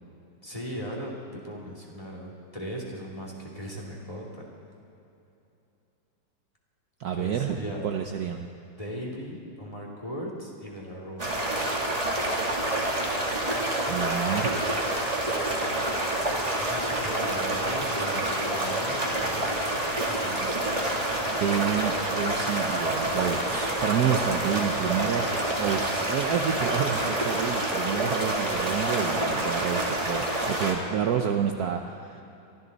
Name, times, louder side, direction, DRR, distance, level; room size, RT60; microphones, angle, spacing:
voice 1, 0.4-4.5 7.2-7.9 8.8-11.5 16.6-19.6 20.0-21.2, equal, 20° left, -2 dB, 2.5 m, -38 dB
voice 2, 7.0-7.6 7.8-8.5 13.9-14.6 21.4-25.3 25.6-32.2, right 8 dB, 65° right, 4 dB, 1.1 m, -29 dB
sound 1, 11.2-30.7, right 1 dB, 20° right, 1.8 m, -27 dB
23.5 x 13.5 x 4.1 m, 2.9 s
omnidirectional pair, 2.1 m